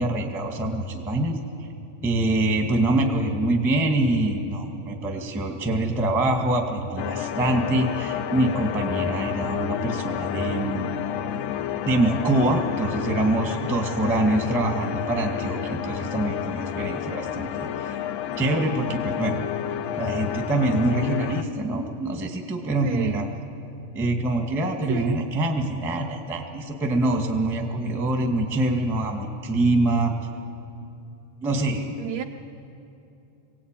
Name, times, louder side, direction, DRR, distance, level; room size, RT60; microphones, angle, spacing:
voice 1, 0.0-1.3 2.0-10.9 11.8-18.0 18.4-19.4 20.0-23.3 23.9-30.1 31.4-32.0, right 2 dB, ahead, 2 dB, 0.7 m, -25 dB
sound 1, 7.0-21.4, left 10 dB, 80° left, 2.1 m, -30 dB
voice 2, 22.8-23.4 24.9-25.2 32.0-32.2, right 10 dB, 75° right, 5 dB, 1.7 m, -31 dB
22.5 x 18.0 x 9.0 m, 2.9 s
omnidirectional pair, 3.7 m